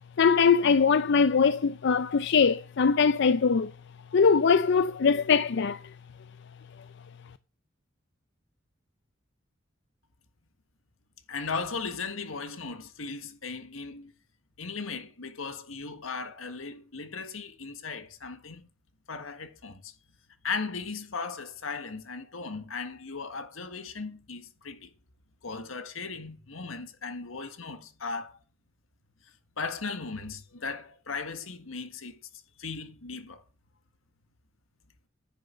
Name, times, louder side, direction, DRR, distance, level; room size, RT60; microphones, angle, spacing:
voice 1, 0.2-3.7 4.1-5.8, left 5 dB, 60° left, 0.5 m, -22 dB
voice 2, 11.3-14.1 14.6-18.7 19.1-19.9 20.4-24.9 25.4-28.4 29.6-32.2 32.6-33.4, left 4 dB, 85° left, 1.8 m, -37 dB
10.0 x 6.9 x 7.6 m
head